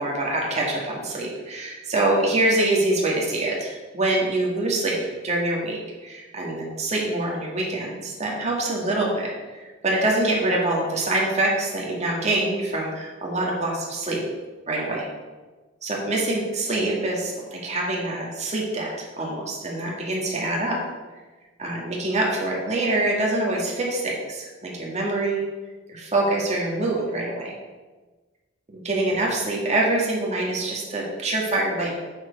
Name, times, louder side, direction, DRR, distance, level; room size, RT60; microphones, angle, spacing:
voice 1, 0.0-5.0 5.2-14.2 14.7-15.1 15.8-20.8 21.6-25.5 25.9-27.6 28.7-31.9, right 2 dB, 35° right, -2 dB, 2.0 m, -25 dB
7.4 x 6.2 x 5.3 m, 1.3 s
head